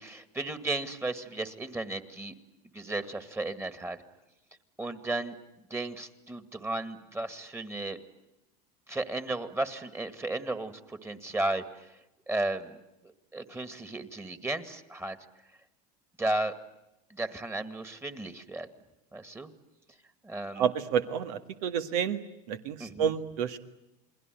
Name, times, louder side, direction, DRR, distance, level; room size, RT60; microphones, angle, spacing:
voice 1, 0.0-2.3 2.7-4.0 4.8-5.4 5.7-8.0 8.9-12.0 12.3-12.8 13.3-15.2 16.2-16.5 17.1-18.7 19.1-19.5 20.2-20.7 22.8-23.1, right 2 dB, 10° right, 11 dB, 2.1 m, -34 dB
voice 2, 20.6-22.2 22.5-23.6, right 8 dB, 75° right, 9 dB, 1.9 m, -29 dB
29.0 x 21.0 x 9.3 m, 0.92 s
supercardioid pair, 105°, 20 cm